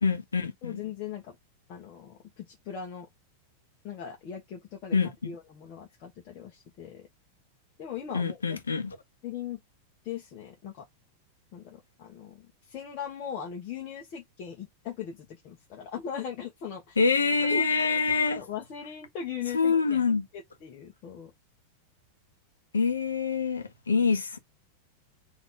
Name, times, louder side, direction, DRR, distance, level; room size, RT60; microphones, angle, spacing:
voice 1, 0.0-0.8 4.9-5.3 8.1-9.0 17.0-18.4 19.5-20.3 22.7-24.4, left 5 dB, 75° left, 1.1 m, -26 dB
voice 2, 0.6-1.3 1.7-3.1 3.8-5.0 5.2-7.1 7.8-8.6 9.2-9.6 10.0-10.8 11.5-17.0 17.5-17.7 18.3-20.0 20.3-21.3 24.0-24.1, left 8 dB, 40° left, 1.3 m, -39 dB
4.1 x 3.1 x 3.8 m
figure-of-eight pair, 90°, 0 cm